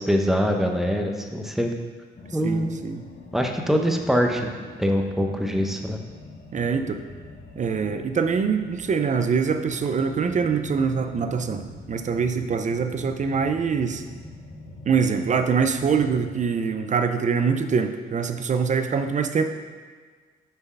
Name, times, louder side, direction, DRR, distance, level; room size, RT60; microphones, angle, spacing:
voice 1, 0.0-1.7 2.3-2.7 3.3-4.5 4.8-6.0, equal, ahead, 3 dB, 0.8 m, -23 dB
sound 1, 2.1-16.4, left 2 dB, 45° left, 1.4 m, -43 dB
voice 2, 2.4-3.0 6.5-7.0 7.6-14.0 14.8-19.4, right 6 dB, 40° right, 8 dB, 0.6 m, -24 dB
6.9 x 4.5 x 5.4 m, 1.5 s
cardioid pair, 90°, 20 cm